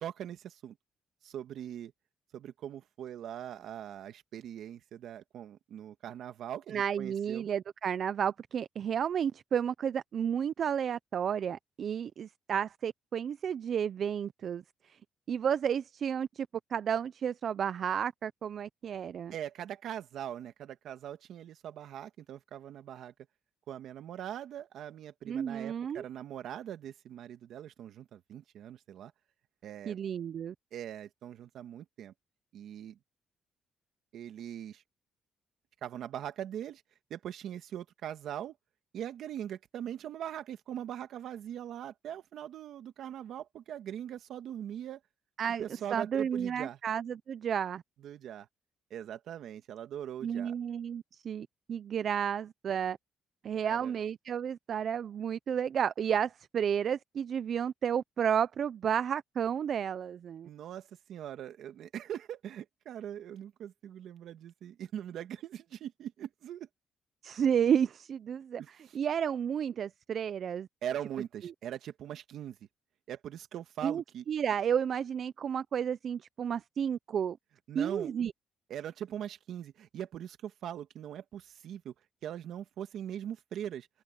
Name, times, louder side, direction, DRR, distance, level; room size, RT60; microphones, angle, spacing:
voice 1, 0.0-0.8 1.2-1.9 2.3-7.5 19.3-23.1 23.7-29.1 29.6-30.0 30.7-32.1 32.5-33.0 34.1-34.8 35.8-36.8 37.1-38.6 38.9-45.0 45.6-46.8 48.0-48.5 48.9-50.6 53.6-53.9 60.4-66.7 68.6-69.0 70.8-72.6 73.1-74.2 77.7-78.1 78.7-81.9 82.2-83.9, right 10 dB, 75° right, 1.9 m, -41 dB
voice 2, 6.7-15.0 15.3-19.3 25.3-26.0 29.9-30.5 45.4-45.6 45.9-47.8 50.2-53.0 53.4-60.5 67.2-68.6 68.9-70.7 71.4-71.5 73.8-77.4 77.7-78.3, right 8 dB, 60° right, 0.5 m, -32 dB
cardioid pair, 90°, 0 cm